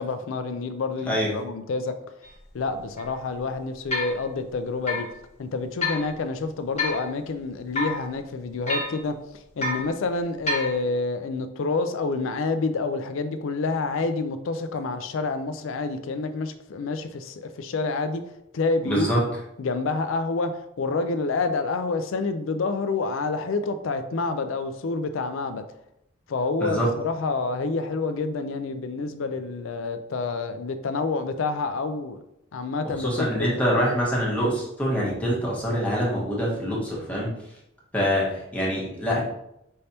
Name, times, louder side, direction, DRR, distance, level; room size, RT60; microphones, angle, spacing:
voice 1, 0.0-2.0 2.5-5.1 5.4-18.2 18.5-19.1 19.6-25.6 26.3-32.2 32.5-33.8, left 3 dB, 70° left, 9 dB, 0.4 m, -28 dB
sound 1, 2.2-2.3 3.0-3.1 3.9-4.2 4.9-5.1 5.8-6.0 6.8-7.1 7.7-8.0 8.7-9.0 9.6-9.9 10.5-10.7, left 2 dB, 35° left, 1.2 m, -28 dB
voice 2, 18.8-19.2 26.6-26.9 33.0-37.5 37.9-39.2, equal, 5° left, -6 dB, 1.3 m, -25 dB
5.4 x 3.3 x 2.8 m, 0.81 s
head